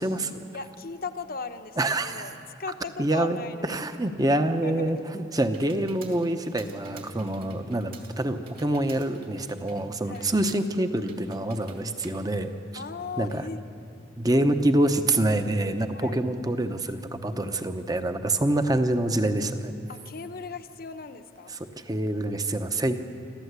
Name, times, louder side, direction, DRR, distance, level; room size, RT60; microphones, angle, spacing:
voice 1, 0.0-0.4 1.8-2.3 3.0-3.4 3.6-12.8 13.2-13.5 14.2-19.7 21.8-22.9, right 1 dB, 20° right, 8 dB, 0.9 m, -26 dB
voice 2, 0.5-3.8 4.6-5.2 8.1-8.2 10.1-10.3 12.7-13.6 15.9-16.2 19.9-21.6 22.6-22.9, left 4 dB, 50° left, 9 dB, 0.9 m, -38 dB
Computer keyboard, 4.9-13.2, right 6 dB, 50° right, 2.6 m, -52 dB
27.0 x 14.0 x 8.2 m, 2.6 s
head